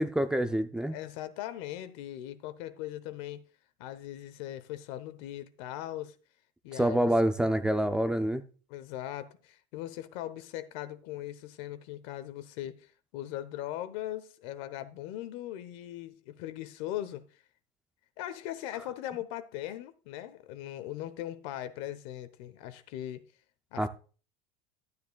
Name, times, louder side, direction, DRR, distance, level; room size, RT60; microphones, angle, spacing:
voice 1, 0.0-1.0 6.8-8.4 23.8-23.9, right 1 dB, 5° right, 0.4 m, -26 dB
voice 2, 0.9-3.4 3.8-6.1 6.6-7.1 8.7-17.2 18.2-23.3 23.7-23.9, left 13 dB, 70° left, 1.0 m, -39 dB
12.5 x 9.7 x 2.3 m
cardioid pair, 150°, 15 cm